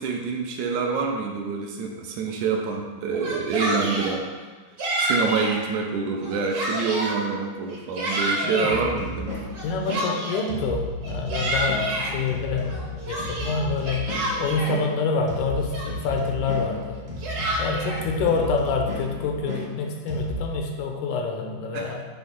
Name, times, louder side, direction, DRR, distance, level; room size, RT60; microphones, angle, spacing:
voice 1, 0.0-4.3 5.0-9.3 12.1-12.3 18.4-18.5 21.7-21.9, right 5 dB, 75° right, 1 dB, 2.1 m, -27 dB
Yell, 3.1-4.2 4.8-5.6 6.1-7.2 7.7-8.8 9.5-10.5 11.0-12.1 12.7-14.7 15.3-15.4 15.7-16.2 16.9-18.0, right 1 dB, 45° right, 1.3 m, -28 dB
sound 1, 8.7-20.6, equal, 30° right, 0.8 m, -34 dB
voice 2, 9.6-14.1 14.4-17.1 17.6-22.1, left 4 dB, 80° left, 2 dB, 2.2 m, -27 dB
8.7 x 3.3 x 5.4 m, 1.3 s
omnidirectional pair, 3.6 m